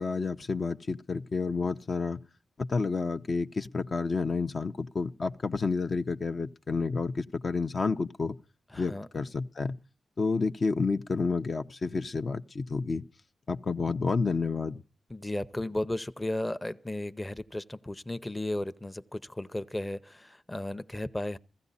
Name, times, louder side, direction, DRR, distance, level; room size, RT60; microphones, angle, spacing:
voice 1, 0.0-2.2 2.6-8.4 8.7-9.8 10.2-13.0 13.5-14.8, left 4 dB, 50° left, 0.7 m, -30 dB
voice 2, 8.7-9.1 15.1-21.4, left 1 dB, 15° left, 0.7 m, -34 dB
16.0 x 14.5 x 4.1 m
cardioid pair, 60°, 0 cm